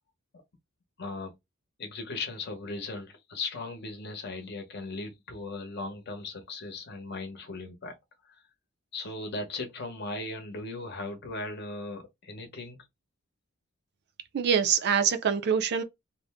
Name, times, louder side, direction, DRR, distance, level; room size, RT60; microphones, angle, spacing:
voice 1, 1.0-1.3 1.8-7.9 8.2-8.4 8.9-12.8, left 3 dB, 50° left, 0.8 m, -37 dB
voice 2, 14.3-15.8, right 7 dB, 50° right, 0.4 m, -24 dB
2.5 x 2.0 x 3.4 m
head